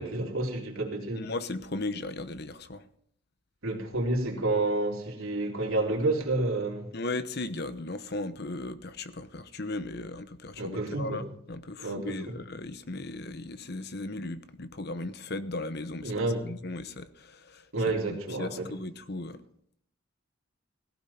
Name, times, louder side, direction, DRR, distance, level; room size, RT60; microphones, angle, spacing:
voice 1, 0.0-1.3 3.6-6.9 10.6-11.3 11.8-12.3 16.0-16.4 17.7-18.7, right 2 dB, 80° right, 3.6 m, -29 dB
voice 2, 1.2-2.8 6.9-16.1 16.4-17.6 18.1-19.4, left 2 dB, 50° left, 0.9 m, -37 dB
17.0 x 15.5 x 4.3 m
head